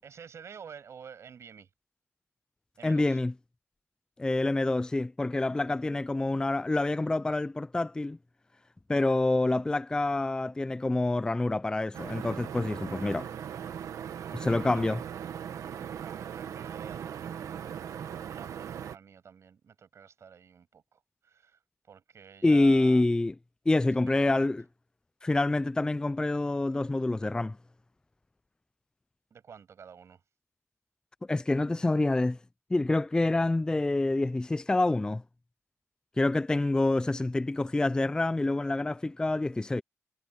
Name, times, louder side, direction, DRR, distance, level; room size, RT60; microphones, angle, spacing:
voice 1, 0.0-1.7 2.8-3.2 12.9-13.2 14.2-15.0 15.8-17.8 18.2-21.6 21.9-23.1 24.0-24.4 29.3-30.2, right 7 dB, 55° right, 6.9 m, -50 dB
voice 2, 2.8-3.3 4.2-8.2 8.9-13.2 14.3-15.0 22.4-23.3 23.7-24.6 25.2-27.6 31.3-32.4 32.7-35.2 36.2-39.8, left 2 dB, 15° left, 0.5 m, -27 dB
sound 1, 11.9-19.0, right 8 dB, 75° right, 1.6 m, -39 dB
cardioid pair, 100°, 6 cm